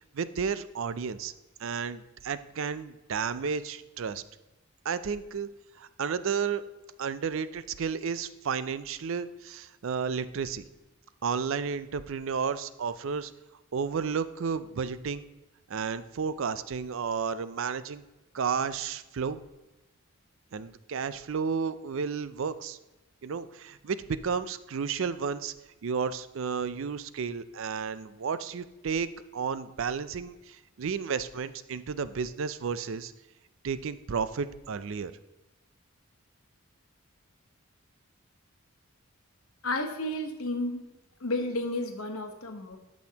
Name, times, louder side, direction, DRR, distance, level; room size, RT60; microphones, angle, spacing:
voice 1, 0.1-1.3 1.6-4.2 4.9-5.5 5.8-6.6 7.0-10.6 11.2-13.3 13.7-15.2 15.7-18.0 18.3-19.4 20.5-22.8 23.2-25.5 25.8-33.1 33.6-35.1, right 6 dB, 65° right, 14 dB, 0.4 m, -32 dB
voice 2, 39.6-40.8 41.2-42.8, left 1 dB, 85° left, 5 dB, 1.2 m, -32 dB
11.5 x 6.3 x 2.9 m, 1.1 s
head